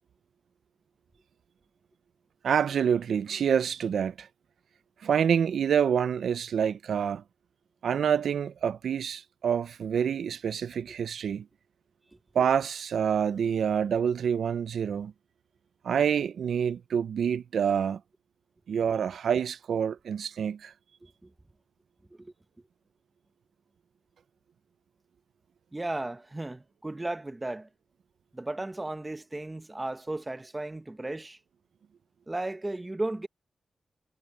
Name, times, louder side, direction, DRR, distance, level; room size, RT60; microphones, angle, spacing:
voice 1, 2.4-4.3 5.0-7.2 7.8-11.4 12.3-15.1 15.8-18.0 18.7-20.7, right 7 dB, 80° right, 0.4 m, -27 dB
voice 2, 25.7-27.7 28.3-31.4 32.3-33.3, right 2 dB, 20° right, 1.2 m, -35 dB
cardioid pair, 95°, 0 cm